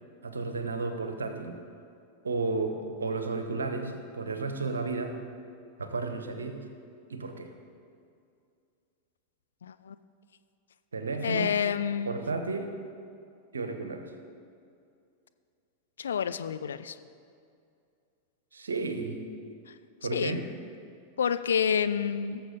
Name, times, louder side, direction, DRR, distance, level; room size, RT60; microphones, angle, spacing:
voice 1, 0.2-1.6 2.2-5.2 5.8-6.6 7.1-7.5 10.9-11.6 12.1-12.7 13.5-14.1 18.5-19.2 20.0-20.4, right 3 dB, 70° right, 7 dB, 1.0 m, -33 dB
voice 2, 9.6-10.0 11.2-12.1 16.0-17.0 19.7-19.8 20.1-20.4 21.2-22.4, left 7 dB, 65° left, 12 dB, 0.4 m, -28 dB
17.5 x 7.0 x 3.9 m, 2.4 s
figure-of-eight pair, 90°, 0 cm